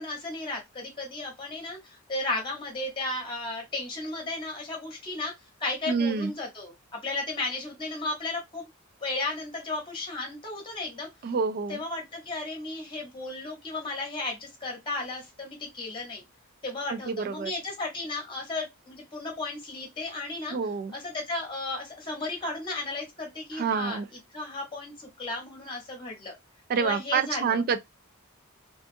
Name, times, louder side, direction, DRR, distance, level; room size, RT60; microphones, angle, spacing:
voice 1, 0.0-5.3 5.6-8.6 9.0-11.1 11.7-16.2 16.6-20.6 20.9-26.4 26.8-27.6, left 2 dB, 25° left, 1.0 m, -34 dB
voice 2, 5.9-6.3 11.2-11.8 16.9-17.5 20.5-20.9 23.5-24.1 26.7-27.8, right 5 dB, 45° right, 0.3 m, -27 dB
2.5 x 2.3 x 2.6 m
head